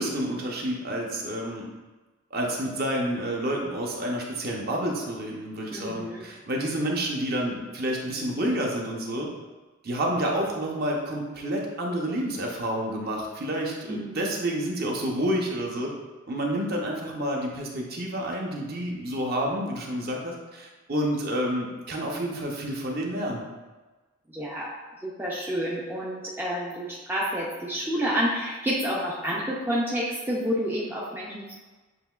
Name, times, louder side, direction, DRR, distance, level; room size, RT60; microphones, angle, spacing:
voice 1, 0.0-1.7 2.3-9.3 9.8-15.9 16.3-23.4, right 1 dB, 45° right, -1 dB, 0.7 m, -29 dB
voice 2, 5.7-6.3 13.9-14.2 24.3-24.7 25.0-31.5, equal, 10° right, -5 dB, 0.4 m, -29 dB
7.5 x 3.0 x 2.4 m, 1.3 s
head